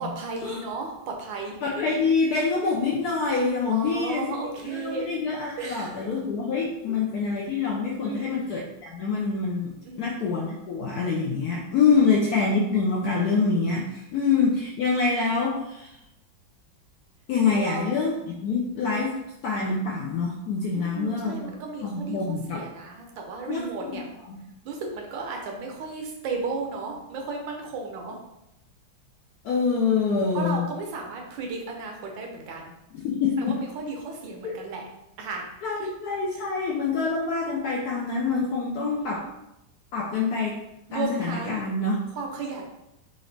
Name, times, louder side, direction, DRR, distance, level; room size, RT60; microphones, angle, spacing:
voice 1, 0.0-1.6 3.7-5.1 5.6-6.0 6.9-7.0 8.0-8.4 9.8-10.1 11.9-12.1 17.5-17.8 20.7-24.1 24.6-28.2 30.3-32.7 33.4-34.9 35.2-35.5 35.8-35.9 38.8-39.3 40.9-41.7 42.1-42.6, right 4 dB, 75° right, 1 dB, 1.4 m, -34 dB
voice 2, 1.6-4.3 4.6-9.7 10.0-15.9 17.3-21.5 21.8-22.6 23.5-24.0 24.3-24.4 29.4-30.7 32.9-33.6 34.4-34.6 35.6-39.2 39.9-40.6 40.9-42.0, left 4 dB, 75° left, -2 dB, 0.9 m, -26 dB
3.9 x 2.5 x 3.2 m, 0.86 s
omnidirectional pair, 2.1 m